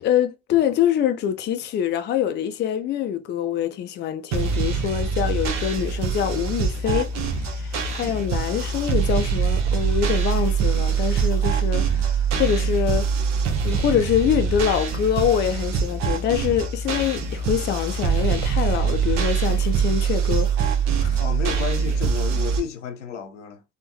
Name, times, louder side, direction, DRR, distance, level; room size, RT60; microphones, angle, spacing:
voice 1, 0.0-13.1 13.6-20.5 21.0-21.2, left 9 dB, 30° left, 0.4 m, -25 dB
sound 1, 4.3-22.6, right 6 dB, 50° right, 0.9 m, -23 dB
voice 2, 21.2-23.6, left 7 dB, 75° left, 0.7 m, -31 dB
3.5 x 2.2 x 2.8 m
figure-of-eight pair, 55°, 36 cm